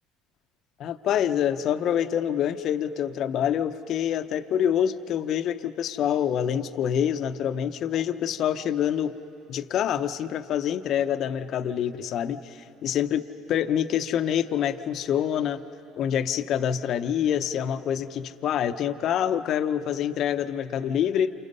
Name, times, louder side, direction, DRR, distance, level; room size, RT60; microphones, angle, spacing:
voice 1, 0.8-9.1 9.5-15.6 16.0-21.3, left 9 dB, 55° left, 10 dB, 0.8 m, -26 dB
28.5 x 28.0 x 5.5 m, 2.7 s
hypercardioid pair, 70°, 0 cm